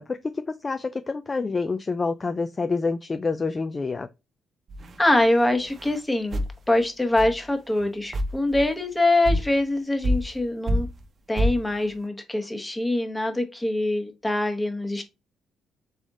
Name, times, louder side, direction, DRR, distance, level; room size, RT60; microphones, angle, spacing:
voice 1, 0.0-4.1, left 4 dB, 30° left, 0.3 m, -27 dB
sound 1, 4.7-5.0 5.7-6.0 6.3-6.5 7.2-7.4 7.8-7.9 8.1-8.7 9.2-9.5 10.0-10.4 10.7-11.0 11.4-11.6, equal, 45° right, 0.7 m, -26 dB
voice 2, 5.0-6.4 6.7-10.9 11.3-15.0, left 1 dB, 15° left, 1.1 m, -24 dB
4.0 x 3.4 x 3.6 m
cardioid pair, 90°, 0 cm